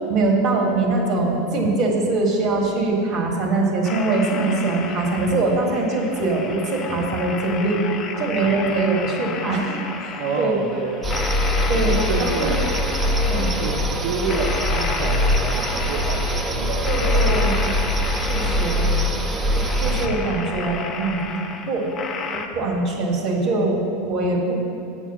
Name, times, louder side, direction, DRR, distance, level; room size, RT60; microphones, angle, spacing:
voice 1, 0.1-7.8 8.2-10.6 11.7-12.7 13.3-13.5 16.7-17.6 18.3-18.9 19.5-21.9 22.3-24.6, right 3 dB, 40° right, 0 dB, 1.6 m, -23 dB
sound 1, 3.8-22.5, left 5 dB, 30° left, 0.6 m, -32 dB
voice 2, 10.0-11.2 11.7-12.6 13.3-17.8 18.4-18.6, right 4 dB, 55° right, -2 dB, 0.8 m, -29 dB
sound 2, 11.0-20.1, left 1 dB, 20° right, 0.6 m, -22 dB
7.1 x 5.1 x 7.0 m, 2.5 s
figure-of-eight pair, 80°, 0 cm